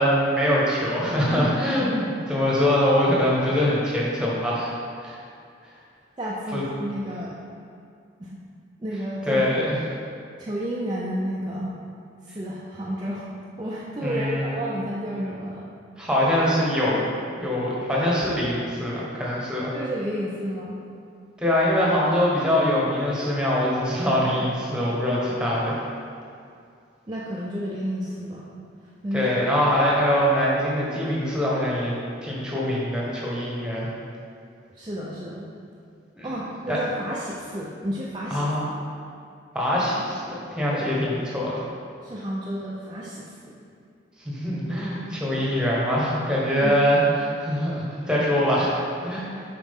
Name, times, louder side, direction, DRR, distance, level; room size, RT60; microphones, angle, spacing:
voice 1, 0.0-4.7 5.0-5.2 6.5-6.6 9.3-9.8 14.0-14.5 16.0-17.0 17.4-19.7 21.4-25.8 29.1-31.9 32.2-33.9 36.2-36.3 36.7-36.8 38.3-38.6 39.5-41.6 44.2-48.7 49.0-49.4, equal, 5° right, -6 dB, 1.1 m, -23 dB
voice 2, 6.2-7.4 8.2-8.3 8.8-9.4 10.4-11.8 12.2-13.2 13.6-15.6 19.7-20.8 27.1-28.5 29.0-29.3 34.8-35.4 36.2-38.5 40.7-40.9 42.0-43.6 46.6-46.7, equal, 25° right, -6 dB, 0.5 m, -31 dB
7.1 x 4.8 x 3.6 m, 2.4 s
head